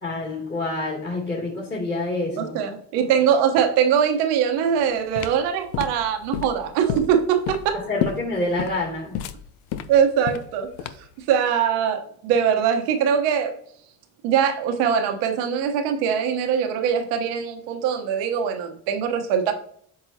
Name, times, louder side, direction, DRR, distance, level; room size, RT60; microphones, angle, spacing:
voice 1, 0.0-2.6 7.7-9.2, left 2 dB, 25° left, -6 dB, 2.6 m, -27 dB
voice 2, 2.4-7.8 9.9-10.7 11.3-13.5 14.2-19.5, right 8 dB, 85° right, 5 dB, 1.2 m, -22 dB
sound 1, 4.7-11.2, left 10 dB, 80° left, 0.6 m, -31 dB
7.7 x 4.8 x 2.8 m, 0.65 s
supercardioid pair, 70°, 40 cm